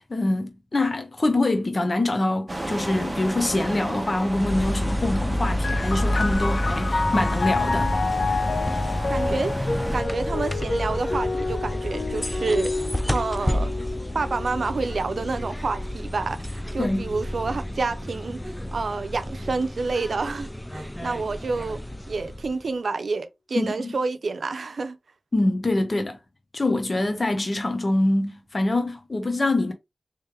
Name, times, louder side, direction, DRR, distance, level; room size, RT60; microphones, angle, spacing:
voice 1, 0.0-8.0 16.8-17.1 23.5-23.9 25.3-26.2 26.5-29.7, left 2 dB, 50° left, 0.8 m, -24 dB
sound 1, 2.5-10.0, right 1 dB, 25° right, 1.0 m, -33 dB
sound 2, 4.2-22.7, left 1 dB, 10° left, 0.4 m, -30 dB
sound 3, 5.6-18.9 19.7-20.5, left 3 dB, 75° left, 0.5 m, -30 dB
voice 2, 9.1-9.5 9.9-12.7 13.1-13.7 14.1-18.4 18.7-21.8 22.1-25.0, right 4 dB, 85° right, 0.6 m, -28 dB
3.3 x 3.1 x 3.4 m
cardioid pair, 50°, 0 cm